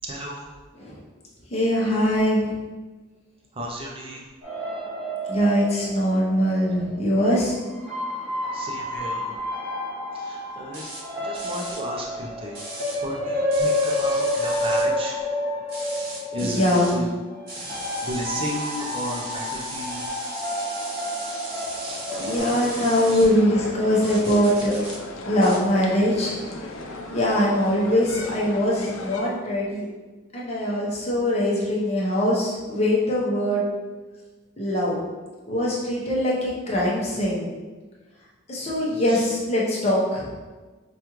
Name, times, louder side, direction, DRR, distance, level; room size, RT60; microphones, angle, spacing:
voice 1, 0.0-0.5 3.5-4.2 8.5-9.3 10.1-10.8 11.2-12.6 13.0-15.2 16.3-17.1 17.5-20.1 21.7-22.0 23.1-23.3 39.1-39.2, equal, 25° right, -2 dB, 0.5 m, -34 dB
voice 2, 1.5-2.5 5.3-7.6 16.4-16.9 22.2-24.8 25.3-26.3 27.1-29.9 30.3-33.6 34.6-35.0 35.5-37.5 38.5-40.3, equal, 30° left, -5 dB, 0.7 m, -22 dB
sound 1, 4.4-6.9 7.7-22.4, left 1 dB, 5° right, 1.3 m, -29 dB
sound 2, 10.7-11.0 11.3-11.8 12.6-13.0 13.5-14.9 15.7-17.0 17.5-23.3 24.0-25.0 25.4-25.6, right 1 dB, 45° right, 0.9 m, -37 dB
sound 3, 22.1-29.2, left 2 dB, 85° left, 0.5 m, -36 dB
4.9 x 2.3 x 3.0 m, 1.3 s
head